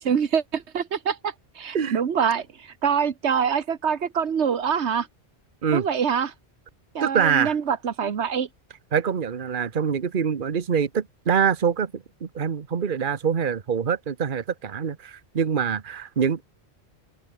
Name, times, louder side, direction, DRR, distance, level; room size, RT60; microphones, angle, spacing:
voice 1, 0.0-5.1 5.7-6.3 6.9-8.5, right 7 dB, 85° right, 1.5 m, -25 dB
voice 2, 7.0-7.5 8.9-16.4, right 7 dB, 50° right, 1.2 m, -25 dB
open air
omnidirectional pair, 1.1 m